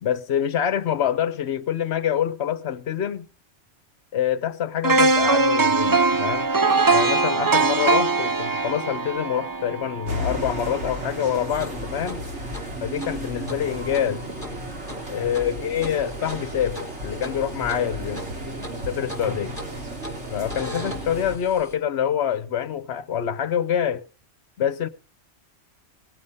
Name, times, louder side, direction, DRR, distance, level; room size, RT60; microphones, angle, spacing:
voice 1, 0.0-3.3 4.1-6.5 6.9-12.3 12.8-14.2 15.1-18.3 18.9-19.6 20.3-24.1 24.6-24.9, left 9 dB, 60° left, 1.0 m, -26 dB
sound 1, 4.8-10.9 11.2-11.4, right 3 dB, 30° right, 0.4 m, -21 dB
sound 2, 10.0-21.4, right 1 dB, 60° right, 2.7 m, -33 dB
sound 3, 11.5-21.7, equal, 15° left, 3.0 m, -40 dB
18.0 x 7.1 x 6.6 m
omnidirectional pair, 1.3 m